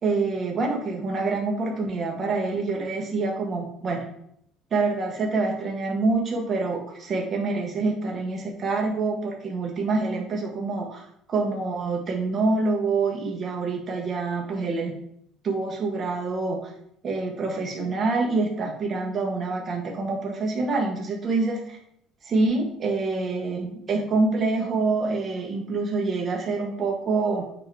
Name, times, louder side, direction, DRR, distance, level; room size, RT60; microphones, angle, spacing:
voice 1, 0.0-4.1 4.7-11.0 11.3-14.9 15.4-16.7 17.0-21.8 22.2-27.4, right 3 dB, 40° right, 0 dB, 1.6 m, -26 dB
7.7 x 3.1 x 4.9 m, 0.73 s
supercardioid pair, 90°, 0 cm